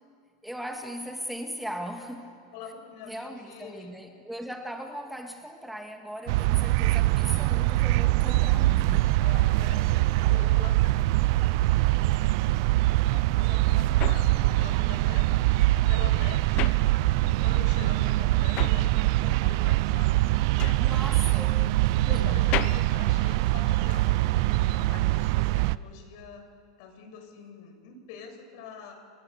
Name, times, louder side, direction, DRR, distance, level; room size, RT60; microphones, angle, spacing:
voice 1, 0.4-2.4 3.1-9.2 20.8-21.6 22.0-22.5, equal, ahead, 3 dB, 2.0 m, -38 dB
voice 2, 2.5-3.9 9.2-12.2 13.1-16.8 17.2-20.3 20.6-21.6 22.0-26.5 26.8-28.9, left 6 dB, 60° left, 5 dB, 6.6 m, -45 dB
sound 1, 6.3-25.8, right 18 dB, 60° right, 0.6 m, -23 dB
sound 2, 13.2-17.5 17.8-24.0, left 13 dB, 45° left, 1.1 m, -37 dB
30.0 x 24.0 x 6.9 m, 2.1 s
supercardioid pair, 135°, 3 cm